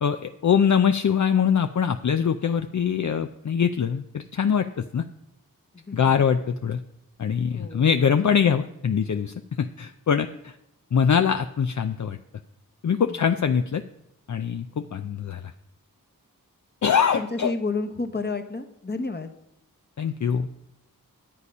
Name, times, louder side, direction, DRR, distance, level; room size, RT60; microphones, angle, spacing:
voice 1, 0.0-5.1 5.9-6.8 7.2-10.6 10.9-12.2 12.8-13.8 14.3-15.4 16.8-17.5 20.0-20.5, left 7 dB, 55° left, 8 dB, 0.5 m, -23 dB
voice 2, 5.7-6.1 7.5-7.9 13.1-13.3 17.1-19.3, left 3 dB, 30° left, 6 dB, 1.1 m, -31 dB
11.0 x 8.2 x 5.4 m, 0.81 s
wide cardioid pair, 65°, 35 cm